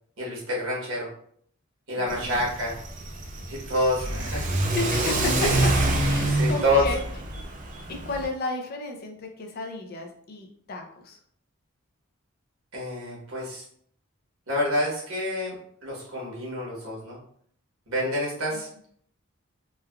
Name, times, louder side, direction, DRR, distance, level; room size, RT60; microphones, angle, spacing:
voice 1, 0.2-1.1 1.9-2.8 3.5-4.6 5.4-5.6 6.3-6.9 12.7-13.6 14.5-15.6 15.8-17.2 17.9-18.7, left 1 dB, 75° right, -4 dB, 1.1 m, -27 dB
voice 2, 2.0-2.4 4.7-5.7 6.0-7.0 7.9-11.2, left 3 dB, 45° left, 3 dB, 0.4 m, -33 dB
Car / Accelerating revving vroom, 2.1-8.3, right 2 dB, 35° right, 0.4 m, -26 dB
3.2 x 2.2 x 2.3 m, 0.63 s
head